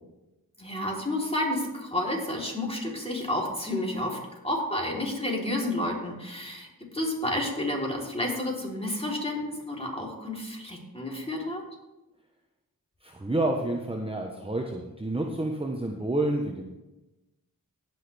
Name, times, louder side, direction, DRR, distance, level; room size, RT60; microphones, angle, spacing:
voice 1, 0.6-4.2 4.4-6.7 6.9-11.6, left 1 dB, 15° left, -2 dB, 3.6 m, -30 dB
voice 2, 13.0-16.6, right 1 dB, 15° right, 1 dB, 1.1 m, -29 dB
17.5 x 6.2 x 3.5 m, 1.0 s
cardioid pair, 40°, 36 cm